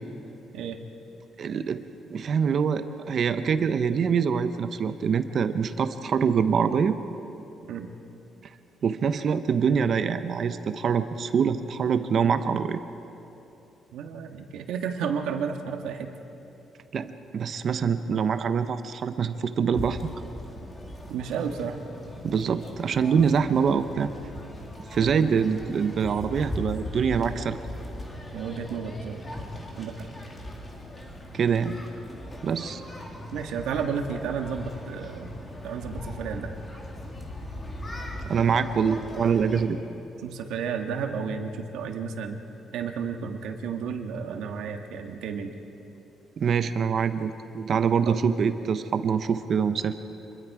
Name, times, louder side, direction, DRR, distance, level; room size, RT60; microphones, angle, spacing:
voice 1, 1.4-7.0 8.8-12.8 16.9-20.1 22.2-24.1 24.9-27.6 31.3-31.8 32.4-32.8 38.3-39.8 46.4-49.9, right 6 dB, 40° right, 10 dB, 0.7 m, -25 dB
voice 2, 13.9-16.1 21.1-21.8 25.3-25.4 28.3-29.2 29.8-30.1 33.3-35.3 35.6-36.6 39.8-39.9 40.2-42.4 42.7-45.5 48.0-48.2, right 6 dB, 85° right, 4 dB, 1.6 m, -32 dB
sound 1, 19.7-39.7, left 1 dB, 15° left, 2.1 m, -39 dB
27.0 x 21.5 x 4.8 m, 3.0 s
cardioid pair, 170°, 0 cm